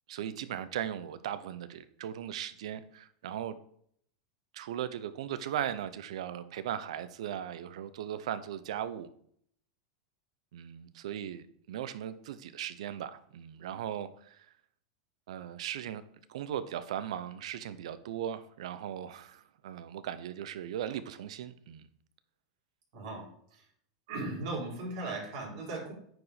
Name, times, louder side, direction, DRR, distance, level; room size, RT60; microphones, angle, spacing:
voice 1, 0.1-3.6 4.5-9.1 10.5-14.5 15.3-16.0 16.3-21.9, right 10 dB, 80° right, 13 dB, 0.7 m, -38 dB
voice 2, 22.9-23.7 24.1-25.9, right 2 dB, 60° right, -2 dB, 3.9 m, -38 dB
9.3 x 5.0 x 5.0 m, 0.65 s
supercardioid pair, 140°, 3 cm